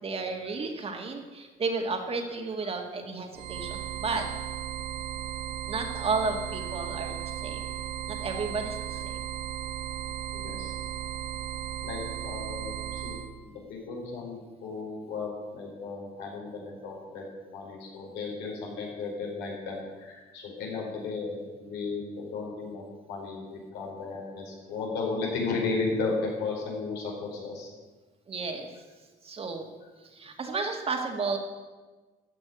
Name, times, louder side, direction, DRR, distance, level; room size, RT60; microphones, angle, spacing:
voice 1, 0.0-4.2 5.7-7.6 8.1-9.2 28.3-28.7 29.2-29.7 30.1-31.4, right 4 dB, 35° right, 4 dB, 2.1 m, -32 dB
sound 1, 3.3-13.3, right 10 dB, 90° right, 1.1 m, -36 dB
voice 2, 10.3-10.7 11.8-17.2 17.5-27.7 29.8-29.9, left 4 dB, 85° left, -1 dB, 4.7 m, -35 dB
14.0 x 6.1 x 9.6 m, 1.3 s
cardioid pair, 110°, 17 cm